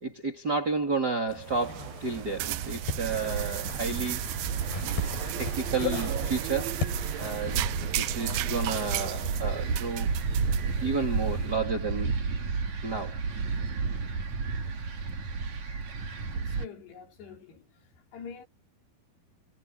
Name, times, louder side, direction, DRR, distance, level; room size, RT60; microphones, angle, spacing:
voice 1, 0.0-4.2 4.8-5.1 5.4-6.8 7.2-7.6 8.0-10.1 10.8-12.1 12.8-13.2, right 4 dB, 25° right, 4.1 m, -31 dB
sound 1, 1.3-8.4, left 5 dB, 70° left, 8.5 m, -38 dB
sound 2, 1.4-11.4, right 15 dB, 75° right, 2.3 m, -35 dB
sound 3, 3.0-16.7, right 4 dB, 45° right, 3.9 m, -32 dB
voice 2, 16.3-17.7 18.1-18.5, left 6 dB, 85° left, 6.4 m, -45 dB
omnidirectional pair, 4.6 m